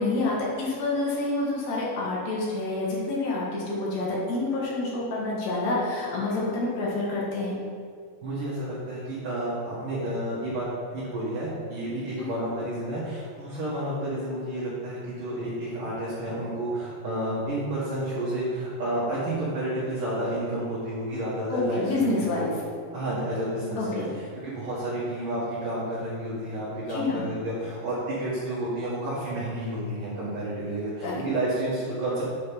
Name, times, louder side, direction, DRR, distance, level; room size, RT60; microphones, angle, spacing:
voice 1, 0.0-7.5 21.5-22.6 23.8-24.1 26.9-27.3 31.0-31.2, left 2 dB, 70° left, -5 dB, 1.7 m, -28 dB
voice 2, 8.2-10.7 10.9-22.3 22.9-32.2, right 1 dB, 55° right, -10 dB, 2.6 m, -30 dB
8.6 x 5.3 x 5.4 m, 2.1 s
omnidirectional pair, 5.5 m